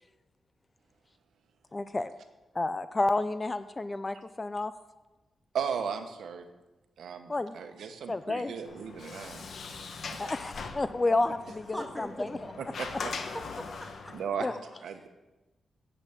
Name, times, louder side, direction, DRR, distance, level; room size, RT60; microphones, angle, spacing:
voice 1, 1.7-2.1 2.5-4.7 7.3-7.6 8.1-8.5 10.2-12.4 14.4-14.5, left 2 dB, 30° left, 13 dB, 0.5 m, -30 dB
voice 2, 5.5-6.5 7.0-9.4 10.1-10.2 12.6-13.1 14.1-15.1, right 7 dB, 85° right, 7 dB, 1.1 m, -36 dB
Sliding door, 8.6-14.2, left 4 dB, 70° left, 1.1 m, -41 dB
voice 3, 11.7-12.5 13.0-14.6, equal, 10° left, 2 dB, 1.9 m, -42 dB
8.8 x 8.1 x 7.1 m, 1.1 s
cardioid pair, 80°, 0 cm